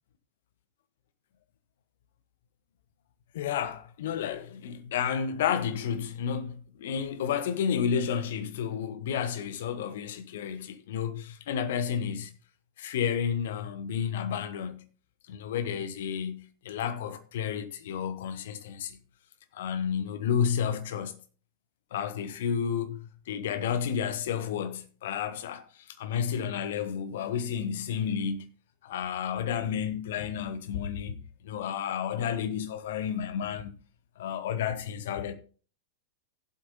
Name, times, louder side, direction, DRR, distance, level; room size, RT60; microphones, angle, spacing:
voice 1, 3.3-12.3 12.8-14.8 15.3-19.0 19.5-21.2 21.9-25.6 26.0-28.4 28.8-33.7 34.2-35.3, left 8 dB, 55° left, 1.2 m, -31 dB
16.5 x 8.0 x 2.7 m
figure-of-eight pair, 90°, 0 cm